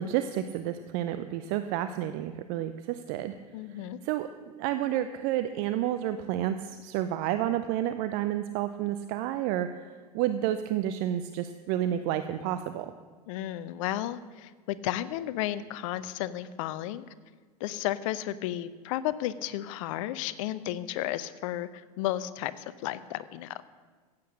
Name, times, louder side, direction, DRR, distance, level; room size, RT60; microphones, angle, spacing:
voice 1, 0.0-3.3 3.7-12.9, right 12 dB, 50° right, 10 dB, 0.6 m, -30 dB
voice 2, 3.5-4.0 13.3-17.1 17.6-23.6, left 13 dB, 55° left, 15 dB, 0.7 m, -33 dB
15.5 x 8.5 x 6.5 m, 1.5 s
figure-of-eight pair, 80°, 20 cm